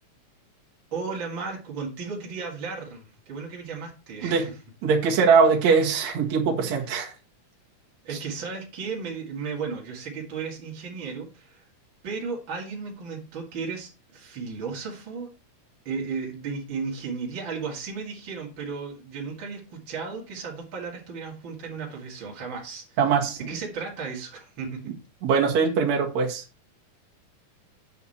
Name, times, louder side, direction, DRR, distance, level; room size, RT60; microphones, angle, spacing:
voice 1, 0.9-4.6 8.0-11.6 12.0-15.3 15.8-23.0 23.4-24.9, right 5 dB, 40° right, -2 dB, 2.8 m, -34 dB
voice 2, 4.8-7.1 23.0-23.4 25.2-26.4, right 5 dB, 60° right, -1 dB, 3.0 m, -21 dB
8.7 x 8.3 x 4.3 m, 0.32 s
omnidirectional pair, 3.6 m